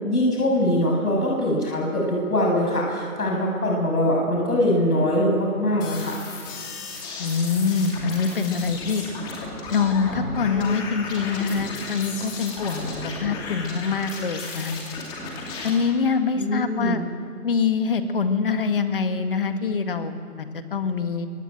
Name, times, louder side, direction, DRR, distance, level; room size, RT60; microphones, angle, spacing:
voice 1, 0.0-6.2 16.4-17.0, left 1 dB, 80° left, -1 dB, 7.0 m, -22 dB
sound 1, 5.8-15.7, left 3 dB, 10° left, 2.5 m, -34 dB
voice 2, 7.2-9.1 9.7-12.9 13.2-14.7 15.6-17.0 17.4-21.3, left 5 dB, 35° left, 7 dB, 2.0 m, -24 dB
23.5 x 18.0 x 9.2 m, 2.4 s
hypercardioid pair, 165°, 44 cm